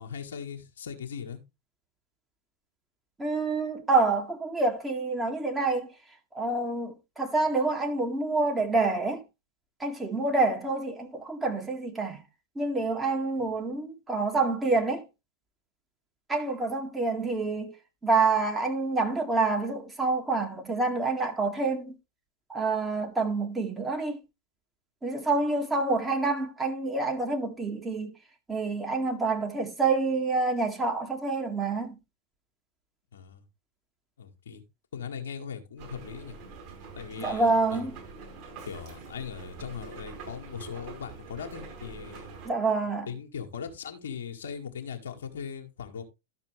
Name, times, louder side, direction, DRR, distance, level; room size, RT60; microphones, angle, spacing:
voice 1, 0.0-1.4 33.1-33.4 34.2-34.6 34.9-36.4 36.9-37.9 38.7-42.3 42.9-46.0, left 7 dB, 65° left, 1.6 m, -39 dB
voice 2, 3.2-5.9 6.3-9.2 9.8-12.2 12.6-15.0 16.3-17.7 18.0-22.0 22.5-24.2 25.0-28.1 28.5-32.0 37.2-37.9 42.5-43.1, right 3 dB, 10° right, 1.9 m, -27 dB
sound 1, 35.8-42.5, right 4 dB, 45° right, 5.5 m, -45 dB
12.0 x 6.6 x 3.2 m
figure-of-eight pair, 90°, 0 cm